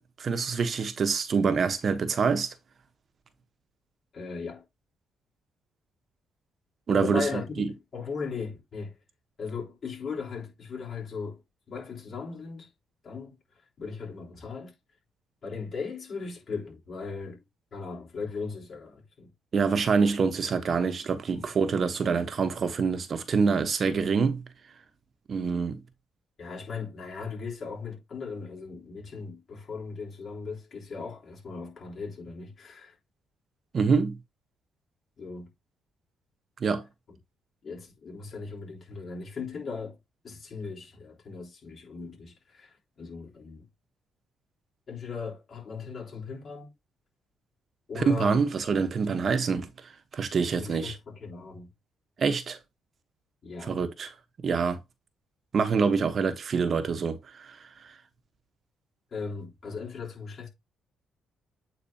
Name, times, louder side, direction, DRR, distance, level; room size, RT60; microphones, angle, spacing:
voice 1, 0.2-2.5 6.9-7.7 19.5-24.4 25.3-25.8 33.7-34.2 36.6-36.9 47.9-50.9 52.2-52.6 53.6-54.1 54.4-54.8 55.5-57.6 57.8-57.9, right 5 dB, 50° right, 1.0 m, -26 dB
voice 2, 4.1-4.6 6.9-7.7 7.9-8.9 9.4-11.4 11.7-12.7 13.0-13.4 13.8-14.7 15.4-17.4 17.7-19.3 19.7-20.0 21.3-21.5 26.4-32.9 35.2-35.5 37.1-37.2 37.6-40.0 40.2-43.6 44.9-46.7 47.9-48.4 50.5-51.7 53.4-53.8 59.1-60.5, left 5 dB, 50° left, 3.3 m, -38 dB
8.6 x 4.0 x 2.8 m
cardioid pair, 90°, 0 cm